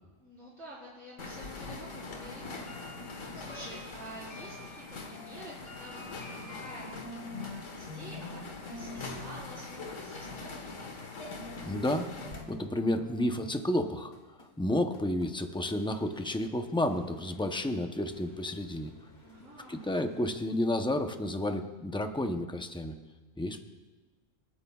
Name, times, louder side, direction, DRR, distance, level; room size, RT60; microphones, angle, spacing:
voice 1, 0.2-2.4 3.3-4.8 5.1-10.7 19.2-19.8, right 1 dB, 60° right, -14 dB, 4.8 m, -48 dB
sound 1, 1.2-12.4, left 3 dB, 75° left, 1.8 m, -43 dB
sound 2, 2.4-7.6 7.9-8.5 8.7-9.4 11.4-20.3, left 3 dB, 35° left, 1.4 m, -48 dB
voice 2, 11.6-12.1 12.5-18.9 19.7-23.0 23.4-23.6, left 1 dB, 5° left, 6 dB, 0.4 m, -31 dB
28.0 x 9.6 x 2.3 m, 1.3 s
omnidirectional pair, 1.3 m